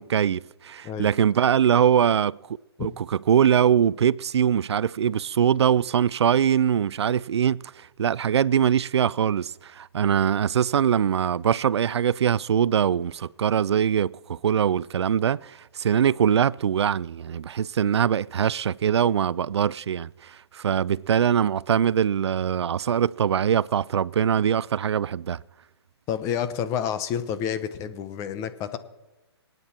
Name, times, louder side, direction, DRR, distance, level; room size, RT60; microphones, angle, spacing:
voice 1, 0.0-2.4 2.8-25.4, right 8 dB, 75° right, 0.4 m, -22 dB
voice 2, 26.1-28.8, left 8 dB, 20° left, 1.0 m, -29 dB
26.0 x 9.2 x 4.4 m
hypercardioid pair, 145°, 14 cm